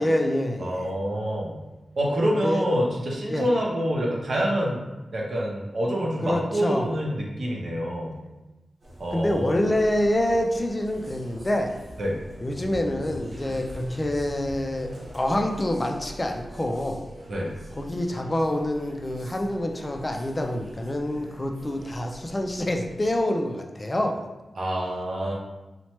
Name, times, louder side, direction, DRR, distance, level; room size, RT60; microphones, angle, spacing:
voice 1, 0.0-0.9 2.4-2.6 3.3-3.5 6.2-6.9 9.1-11.8 12.4-17.1 17.8-24.3, left 1 dB, 25° left, 2 dB, 0.4 m, -26 dB
voice 2, 0.6-1.6 2.0-4.8 5.1-8.2 9.0-9.6 12.0-12.2 13.4-13.6 17.3-17.5 24.6-25.3, equal, 65° right, -3 dB, 0.7 m, -26 dB
sound 1, 8.8-23.2, right 1 dB, 50° right, 1.1 m, -43 dB
3.0 x 2.1 x 2.9 m, 1.1 s
cardioid pair, 65°, 0 cm